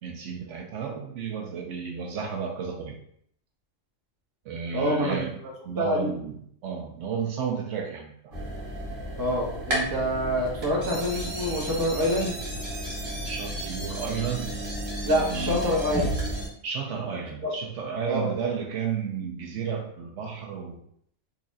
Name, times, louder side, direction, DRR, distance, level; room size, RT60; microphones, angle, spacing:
voice 1, 0.0-3.0 4.4-5.4 5.6-8.4 13.3-14.7 15.0-15.6 16.6-20.8, right 6 dB, 70° right, 0 dB, 0.9 m, -32 dB
voice 2, 4.7-5.2 5.8-6.1 9.2-12.3 15.0-16.1 17.4-17.5 18.1-18.3, equal, 20° right, -3 dB, 0.7 m, -26 dB
sound 1, 8.3-16.5, right 1 dB, 55° right, 1.2 m, -32 dB
4.0 x 2.8 x 2.5 m, 0.67 s
omnidirectional pair, 1.3 m